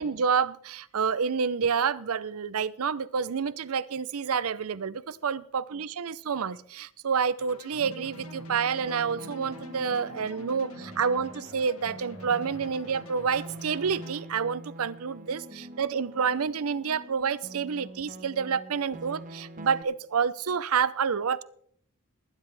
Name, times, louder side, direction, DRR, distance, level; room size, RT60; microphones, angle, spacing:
voice 1, 0.0-21.4, right 6 dB, 75° right, 18 dB, 0.6 m, -28 dB
sound 1, 7.4-14.2, left 2 dB, 70° left, 1.5 m, -48 dB
sound 2, 7.8-19.8, right 1 dB, 35° right, 1.3 m, -45 dB
21.0 x 9.9 x 3.4 m, 0.62 s
head